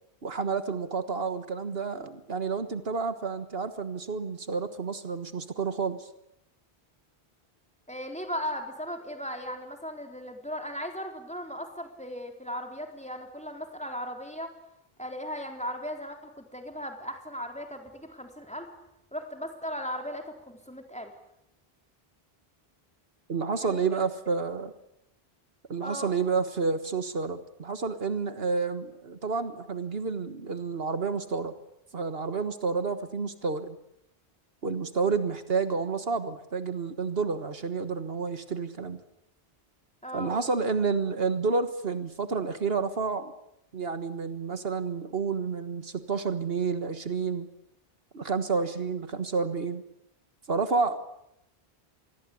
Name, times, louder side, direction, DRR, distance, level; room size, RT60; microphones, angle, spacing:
voice 1, 0.2-6.1 23.3-24.7 25.7-31.5 31.9-33.8 34.6-39.0 40.1-43.3 43.7-47.5 48.1-49.8 50.5-51.0, right 4 dB, 70° right, 10 dB, 1.7 m, -30 dB
voice 2, 7.9-14.5 15.0-18.7 19.1-21.1 23.6-23.8 25.8-26.1 40.0-40.4, equal, 5° left, 4 dB, 4.0 m, -37 dB
26.5 x 21.0 x 8.6 m, 0.80 s
omnidirectional pair, 1.0 m